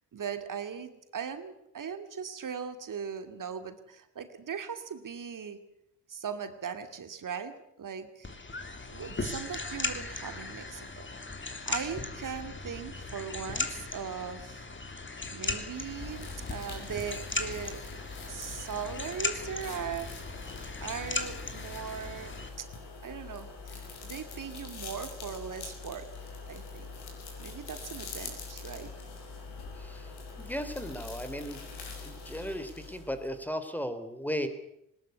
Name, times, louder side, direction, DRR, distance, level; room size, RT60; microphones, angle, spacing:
voice 1, 0.1-5.6 6.1-8.3 8.9-10.9 11.7-14.6 15.3-17.8 18.2-20.1 20.8-22.7 23.0-26.1 26.5-26.9 27.4-28.9, right 7 dB, 40° right, 9 dB, 2.5 m, -39 dB
sound 1, 8.2-22.5, left 3 dB, 25° left, 3.1 m, -37 dB
sound 2, 15.7-33.5, left 4 dB, 55° left, 6.5 m, -44 dB
voice 2, 29.7-30.1 30.4-31.6 32.0-34.5, equal, 5° left, 10 dB, 3.3 m, -36 dB
20.0 x 19.5 x 8.2 m, 0.81 s
hypercardioid pair, 50°, 47 cm